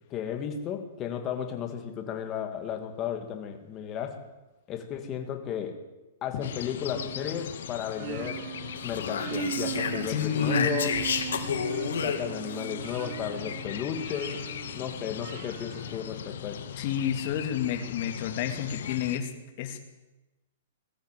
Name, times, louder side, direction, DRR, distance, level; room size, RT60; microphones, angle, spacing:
voice 1, 0.1-4.2 4.7-5.8 6.2-8.4 8.8-11.0 12.0-16.6, left 8 dB, 20° left, 5 dB, 2.3 m, -34 dB
sound 1, 6.4-19.2, left 9 dB, 60° left, 1.2 m, -39 dB
sound 2, 6.9-16.7, right 14 dB, 40° right, 0.7 m, -39 dB
Speech, 8.8-12.7, left 6 dB, 90° left, 3.3 m, -31 dB
voice 2, 10.1-10.8 16.8-19.3 19.6-19.8, left 9 dB, 35° left, 5 dB, 2.6 m, -29 dB
20.5 x 13.5 x 9.2 m, 1.1 s
hypercardioid pair, 170°, 0 cm